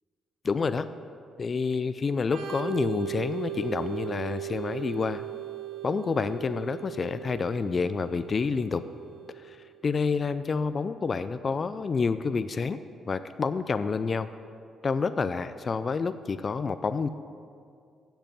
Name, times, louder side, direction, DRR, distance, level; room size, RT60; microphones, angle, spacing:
voice 1, 0.4-0.9 1.4-5.2 5.8-8.8 9.4-9.6 9.8-12.8 13.1-14.3 14.8-17.1, left 4 dB, 40° left, 12 dB, 0.3 m, -28 dB
Organ, 2.2-9.7, right 12 dB, 70° right, 0.9 m, -38 dB
7.9 x 6.9 x 7.4 m, 2.3 s
cardioid pair, 90°, 0 cm